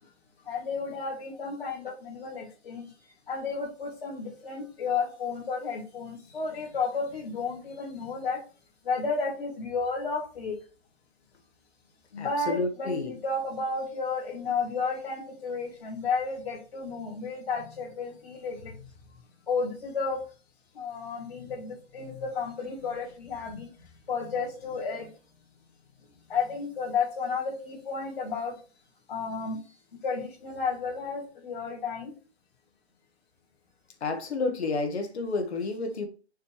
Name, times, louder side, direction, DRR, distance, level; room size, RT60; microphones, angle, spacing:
voice 1, 0.4-2.9 3.3-8.4 8.8-10.6 12.1-18.9 19.5-20.2 20.7-23.7 24.1-25.1 26.3-28.5 29.1-29.6 30.0-32.1, left 4 dB, 55° left, 2.9 m, -32 dB
voice 2, 12.2-13.1 34.0-36.1, left 3 dB, 70° left, 1.6 m, -30 dB
6.5 x 3.4 x 4.4 m
hypercardioid pair, 180°, 34 cm